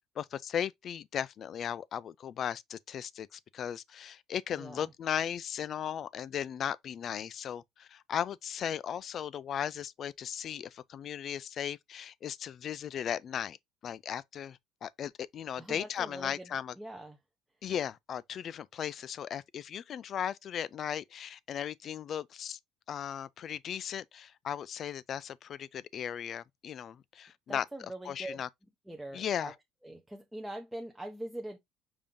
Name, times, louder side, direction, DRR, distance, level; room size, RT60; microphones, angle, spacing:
voice 1, 0.2-13.6 13.8-16.7 17.6-22.6 22.9-27.6 28.1-28.5 29.1-29.5, left 9 dB, 40° left, 0.3 m, -37 dB
voice 2, 4.5-4.9 15.6-17.2 27.5-28.4 28.9-29.5 29.8-31.6, right 1 dB, 5° right, 0.6 m, -43 dB
5.2 x 2.7 x 3.5 m
cardioid pair, 140°, 0 cm